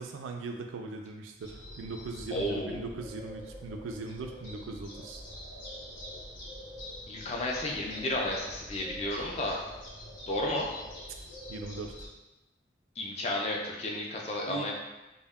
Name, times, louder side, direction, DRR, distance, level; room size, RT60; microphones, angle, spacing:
voice 1, 0.0-5.2 11.5-12.1 14.5-14.7, right 3 dB, 85° right, 4 dB, 0.3 m, -39 dB
sound 1, 1.4-12.1, equal, 80° left, 0.7 m, -45 dB
voice 2, 2.3-2.8 7.1-9.6 10.3-10.6 13.0-14.7, left 1 dB, 35° left, -1 dB, 0.3 m, -32 dB
2.1 x 2.1 x 3.4 m, 1.0 s
head